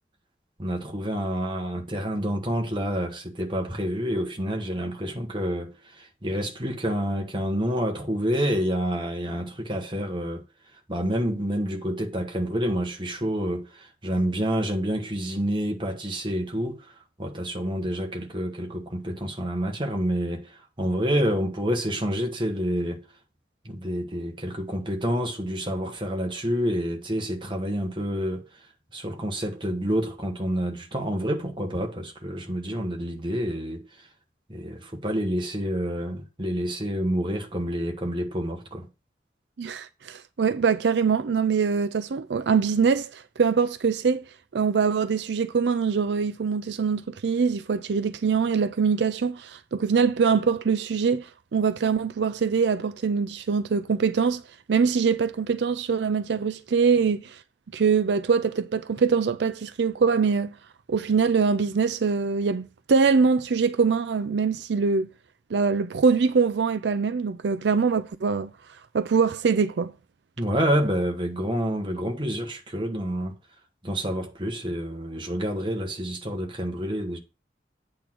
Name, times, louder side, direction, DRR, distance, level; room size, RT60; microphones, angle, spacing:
voice 1, 0.6-10.4 10.9-16.9 17.2-23.0 23.6-28.5 28.9-33.8 34.5-38.9 70.4-73.3 73.8-77.2, equal, 25° right, 1.3 m, -28 dB
voice 2, 39.6-44.2 44.5-54.4 54.7-57.4 57.7-60.5 60.9-65.1 65.5-68.5 68.9-69.9, right 5 dB, 80° right, 0.5 m, -23 dB
8.5 x 3.7 x 6.0 m
head